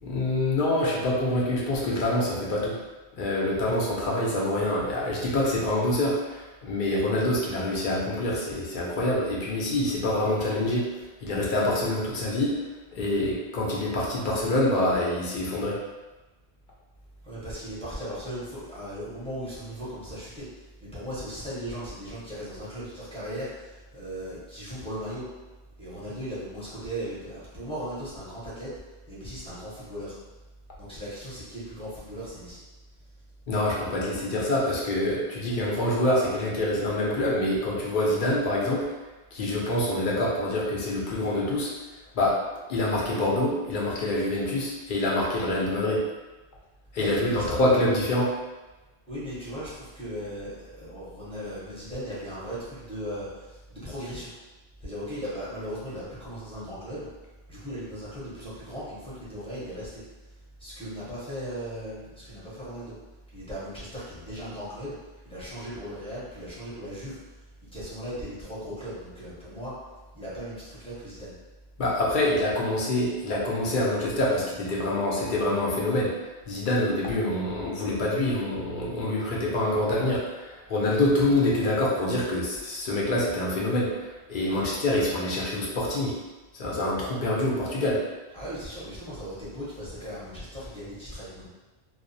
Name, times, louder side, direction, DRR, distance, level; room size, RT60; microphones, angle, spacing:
voice 1, 0.0-2.8 3.1-10.9 11.2-12.6 12.9-15.8 33.5-38.9 39.3-41.7 42.1-42.4 42.7-46.0 46.9-48.3 71.8-76.1 76.5-86.2 86.5-88.0, left 1 dB, 60° left, -4 dB, 0.6 m, -26 dB
voice 2, 17.2-25.2 25.8-28.7 29.1-30.1 30.8-32.6 47.0-47.4 49.1-54.3 54.8-57.1 57.5-60.0 60.6-62.9 63.3-64.9 65.2-67.2 67.7-69.7 70.1-71.3 84.5-84.8 88.3-91.5, equal, 5° left, -11 dB, 0.7 m, -37 dB
2.3 x 2.0 x 2.6 m, 1.2 s
omnidirectional pair, 1.1 m